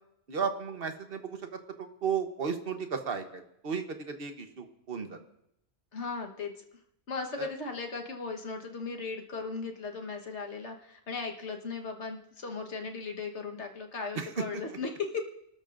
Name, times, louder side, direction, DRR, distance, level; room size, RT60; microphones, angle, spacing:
voice 1, 0.3-1.4 1.8-5.2 7.4-7.5 14.2-14.4, right 6 dB, 55° right, 7 dB, 1.3 m, -34 dB
voice 2, 5.9-6.6 7.1-15.2, left 4 dB, 75° left, 3 dB, 1.7 m, -37 dB
28.5 x 13.0 x 2.6 m, 0.78 s
omnidirectional pair, 1.2 m